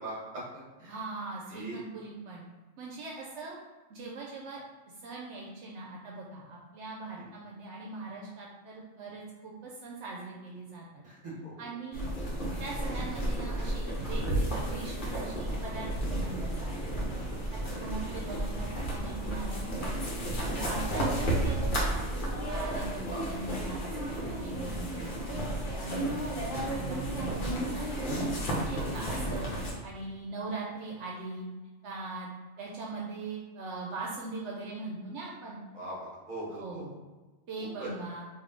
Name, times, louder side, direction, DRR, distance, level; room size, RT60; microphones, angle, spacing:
voice 1, 0.0-1.0 1.5-1.8 7.2-7.3 11.0-11.7 17.9-18.1 21.0-21.2 22.9-23.2 27.2-27.4 29.3-29.4 35.7-36.9 37.6-37.9, right 1 dB, 35° right, -6 dB, 1.3 m, -42 dB
voice 2, 0.9-2.4 2.8-3.6 3.9-4.6 5.0-11.0 11.6-12.1 12.6-17.0 17.3-17.5 17.8-20.2 20.5-22.0 22.5-31.5 31.8-32.3 32.6-35.6 36.6-37.0 37.5-38.2, right 3 dB, 75° right, -3 dB, 0.9 m, -41 dB
sound 1, 11.9-29.7, right 1 dB, 50° left, 0.9 m, -32 dB
3.4 x 2.6 x 3.7 m, 1.2 s
omnidirectional pair, 1.2 m